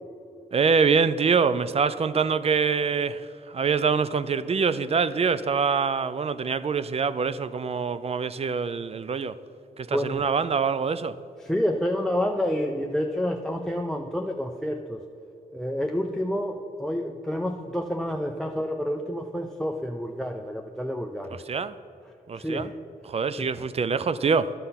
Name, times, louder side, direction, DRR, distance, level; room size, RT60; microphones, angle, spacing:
voice 1, 0.5-3.2 3.5-9.4 9.8-11.2 21.5-21.7 22.3-22.7 23.1-24.5, right 5 dB, 40° right, 15 dB, 0.4 m, -25 dB
voice 2, 9.9-10.3 11.4-15.0 15.5-21.4 22.4-22.7 23.4-23.6, equal, 5° left, 4 dB, 0.6 m, -29 dB
10.5 x 6.8 x 5.7 m, 2.6 s
cardioid pair, 70°, 15 cm